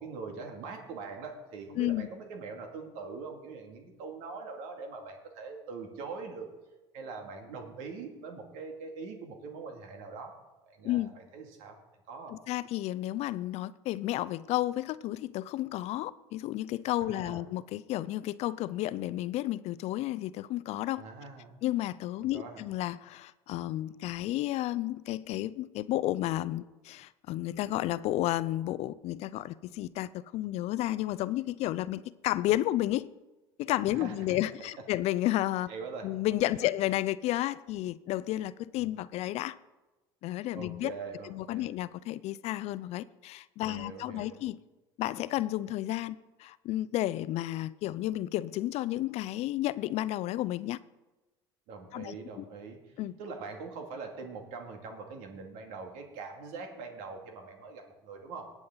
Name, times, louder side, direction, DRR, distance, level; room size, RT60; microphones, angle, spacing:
voice 1, 0.0-6.5 6.9-10.3 10.6-11.8 12.1-12.3 17.0-17.4 21.0-21.5 22.2-22.6 33.9-34.4 35.7-36.1 36.5-36.7 40.5-41.7 43.6-44.4 51.7-52.8 53.2-58.5, right 4 dB, 70° right, 2.3 m, -43 dB
voice 2, 1.8-2.1 10.8-11.2 12.3-21.0 21.6-33.1 33.6-35.7 36.0-39.5 40.2-40.9 41.2-44.6 45.0-50.8 51.9-52.4 53.0-53.2, left 15 dB, 55° left, 0.4 m, -32 dB
19.0 x 7.2 x 3.9 m
hypercardioid pair, 85°, 13 cm